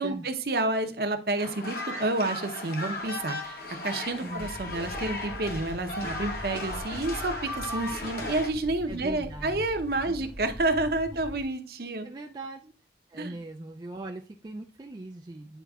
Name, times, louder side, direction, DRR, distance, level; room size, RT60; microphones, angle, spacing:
voice 1, 0.0-12.1 13.1-13.4, right 2 dB, 55° right, 7 dB, 0.7 m, -29 dB
sound 1, 1.4-8.5, left 2 dB, 55° left, 1.0 m, -36 dB
sound 2, 3.0-11.4, equal, 10° left, 0.9 m, -43 dB
voice 2, 8.9-9.6 10.1-10.2 12.0-12.7 13.1-15.6, right 2 dB, 25° right, 2 dB, 0.3 m, -40 dB
9.2 x 4.5 x 2.3 m, 0.40 s
head